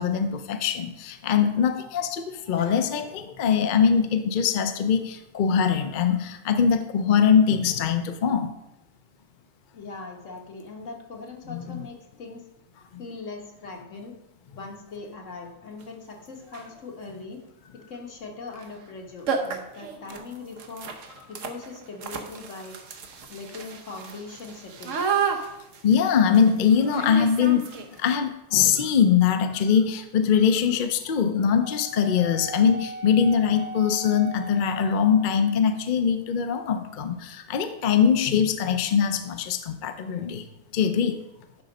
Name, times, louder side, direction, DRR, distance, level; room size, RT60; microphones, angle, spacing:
voice 1, 0.0-8.5 11.5-11.9 25.8-40.5 40.7-41.2, left 7 dB, 50° left, 7 dB, 0.6 m, -22 dB
voice 2, 9.7-12.4 13.0-14.1 14.6-17.4 17.9-20.9 21.3-22.8 23.3-25.0, left 3 dB, 75° left, 1 dB, 1.7 m, -40 dB
sound 1, 15.8-15.9 16.4-16.8 18.5-18.7 18.9-19.0 19.3-28.1, right 6 dB, 75° right, 1.2 m, -32 dB
Wind instrument woodwind instrument, 31.6-35.8, right 1 dB, 10° right, 0.7 m, -39 dB
10.5 x 3.9 x 5.2 m, 0.89 s
omnidirectional pair, 1.3 m